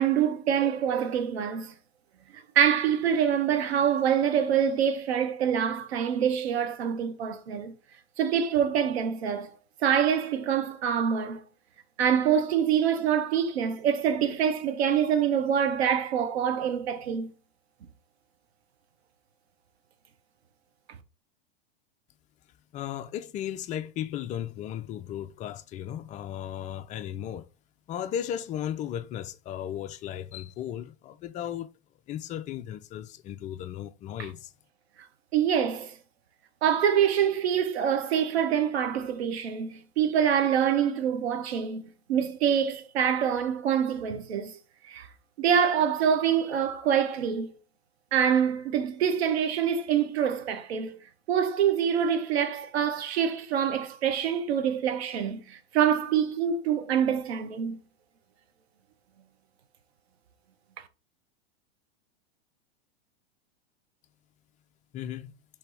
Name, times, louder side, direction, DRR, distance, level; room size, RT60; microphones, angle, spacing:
voice 1, 0.0-1.7 2.3-7.7 8.2-9.5 9.8-11.4 12.0-17.3 35.3-35.9 36.6-44.6 44.8-45.1 45.4-47.5 48.1-51.0 51.3-57.8, right 8 dB, 80° right, 1.0 m, -25 dB
voice 2, 22.7-27.5 27.9-31.7 32.1-34.5 64.9-65.3, left 10 dB, 25° left, 0.4 m, -35 dB
3.3 x 3.3 x 4.7 m
hypercardioid pair, 120°, 32 cm